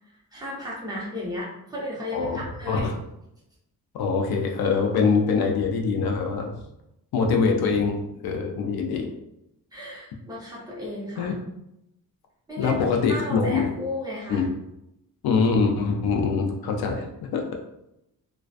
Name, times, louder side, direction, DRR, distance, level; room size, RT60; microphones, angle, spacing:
voice 1, 0.3-2.9 9.7-11.3 12.5-14.5, left 1 dB, 10° right, -6 dB, 0.7 m, -34 dB
voice 2, 2.1-2.9 3.9-6.6 7.1-9.1 11.2-11.3 12.6-13.7 14.3-14.5 15.2-17.4, left 5 dB, 85° left, 3 dB, 0.5 m, -24 dB
2.4 x 2.2 x 2.4 m, 0.85 s
wide cardioid pair, 135°, 36 cm